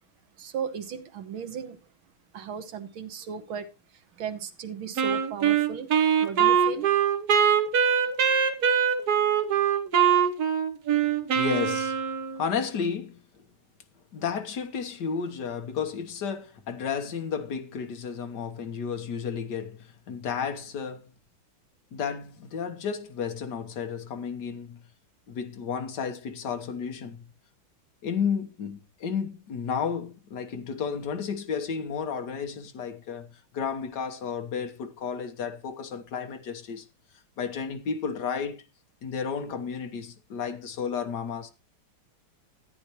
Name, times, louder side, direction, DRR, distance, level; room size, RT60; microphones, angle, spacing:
voice 1, 0.4-1.8 2.3-3.7 4.2-5.9 6.2-6.9, right 7 dB, 75° right, 2.0 m, -35 dB
Wind instrument woodwind instrument, 5.0-12.4, right 8 dB, 55° right, 1.4 m, -23 dB
voice 2, 11.3-12.0 12.4-13.5 14.1-21.1 21.9-24.8 25.3-27.2 28.0-36.9 37.4-38.7 39.0-41.5, left 6 dB, 55° left, 1.7 m, -32 dB
14.0 x 9.6 x 3.0 m
omnidirectional pair, 2.3 m